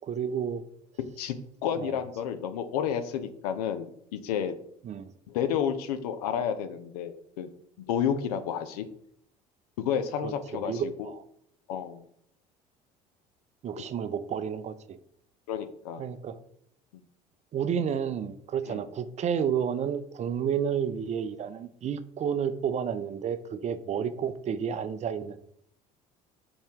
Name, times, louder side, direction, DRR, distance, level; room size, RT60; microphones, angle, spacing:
voice 1, 0.1-0.6 1.8-2.0 4.8-5.1 10.2-11.2 13.6-15.0 16.0-16.4 17.5-25.4, right 8 dB, 35° right, 12 dB, 0.4 m, -31 dB
voice 2, 1.6-4.6 5.3-7.5 7.8-8.9 9.8-11.1 11.7-12.0 15.5-16.0 16.9-17.0 18.7-18.8 24.0-24.1, left 8 dB, 85° left, 11 dB, 0.5 m, -31 dB
4.4 x 2.7 x 3.4 m, 0.70 s
hypercardioid pair, 70°, 19 cm